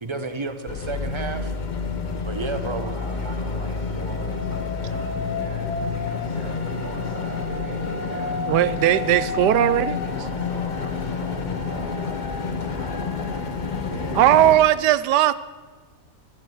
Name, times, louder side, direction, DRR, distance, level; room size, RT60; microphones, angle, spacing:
voice 1, 0.0-1.5 2.2-2.9, right 3 dB, 25° right, 8 dB, 0.7 m, -31 dB
sound 1, 0.7-14.6, left 4 dB, 35° left, 0.8 m, -28 dB
voice 2, 2.3-8.5 10.1-13.5 13.9-14.6, right 1 dB, 45° right, -3 dB, 4.6 m, -40 dB
voice 3, 8.5-10.0 14.1-15.3, right 12 dB, 85° right, 16 dB, 1.2 m, -18 dB
13.5 x 7.6 x 9.2 m, 1.4 s
omnidirectional pair, 1.8 m